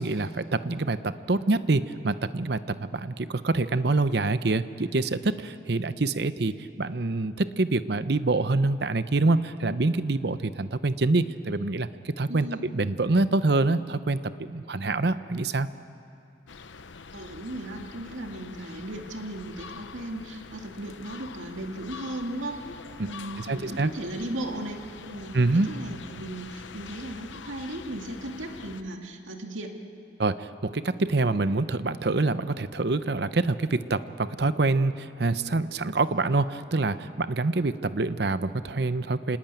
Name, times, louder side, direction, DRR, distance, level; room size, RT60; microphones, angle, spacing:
voice 1, 0.0-15.7 23.0-23.1 23.4-23.9 25.3-25.7 30.2-39.4, right 3 dB, 55° right, 13 dB, 0.7 m, -26 dB
voice 2, 12.3-12.7 17.1-22.6 23.0-25.4 25.7-29.7, right 1 dB, 90° right, 3 dB, 2.3 m, -36 dB
sound 1, 16.5-28.8, left 5 dB, 75° left, 0.8 m, -45 dB
27.5 x 19.5 x 9.2 m, 2.6 s
head